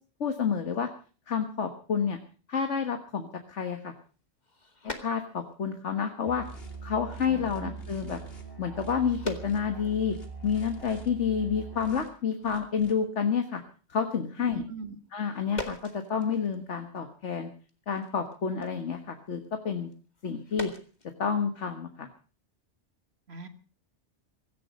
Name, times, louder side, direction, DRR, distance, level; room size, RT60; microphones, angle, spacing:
voice 1, 0.2-0.9 1.3-2.2 2.5-3.9 4.8-6.4 6.8-8.2 8.6-10.2 10.4-13.6 13.9-14.6 15.1-15.8 16.1-17.5 17.9-19.9 20.2-20.7 21.2-22.1, left 6 dB, 80° left, 6 dB, 1.7 m, -29 dB
sound 1, 4.0-5.6 6.0-6.4 6.9-7.1 7.3-7.4 7.7-7.8 8.7-10.2 10.6-10.7 10.9-11.3 11.6-11.7 12.1-12.5 12.7-13.0 13.3-13.4 15.1-17.0 17.3-21.1, left 2 dB, 35° left, 2.3 m, -44 dB
Musical instrument, 6.2-12.0, right 5 dB, 20° right, 6.3 m, -42 dB
sound 2, 6.4-6.8 7.1-8.4 8.7-9.6 10.1-11.1 11.7-12.1 12.4-12.9, left 2 dB, 55° left, 3.2 m, -52 dB
voice 2, 7.3-7.8 14.4-15.0 23.3-23.5, right 5 dB, 60° right, 9 dB, 2.0 m, -41 dB
17.0 x 15.5 x 5.2 m, 0.39 s
omnidirectional pair, 1.2 m